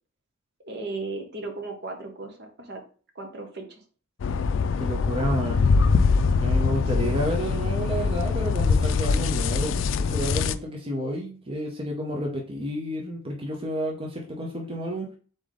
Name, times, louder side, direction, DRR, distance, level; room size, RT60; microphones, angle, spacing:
voice 1, 0.6-2.8 3.1-3.8 7.0-7.2, right 3 dB, 55° right, 4 dB, 1.0 m, -36 dB
sound 1, 4.2-10.5, left 4 dB, 70° left, 0.3 m, -23 dB
voice 2, 4.8-5.7 6.4-15.1, equal, 30° right, 0 dB, 0.7 m, -30 dB
4.0 x 3.4 x 3.7 m, 0.39 s
head